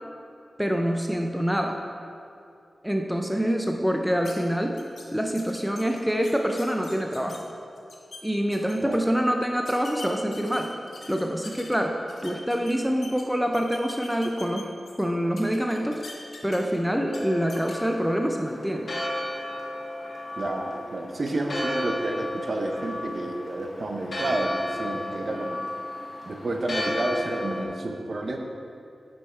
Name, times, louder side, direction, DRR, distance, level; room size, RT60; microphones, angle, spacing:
voice 1, 0.6-1.8 2.8-4.8 5.1-7.4 8.2-10.7 11.1-16.0 16.4-18.9, equal, ahead, 2 dB, 0.5 m, -26 dB
sound 1, 4.2-4.3 4.8-5.0 5.3-7.4 7.8-8.2 8.5-9.0 9.6-11.7 12.1-13.2 13.5-15.0 15.4-16.8 17.1-17.2 17.5-17.7, left 3 dB, 85° left, 1.2 m, -43 dB
Church bell, 17.1-27.6, left 1 dB, 60° left, 1.7 m, -34 dB
voice 2, 20.4-25.6 26.3-28.4, right 2 dB, 50° right, 2 dB, 0.8 m, -30 dB
9.7 x 5.4 x 4.5 m, 2.5 s
wide cardioid pair, 125°, 0 cm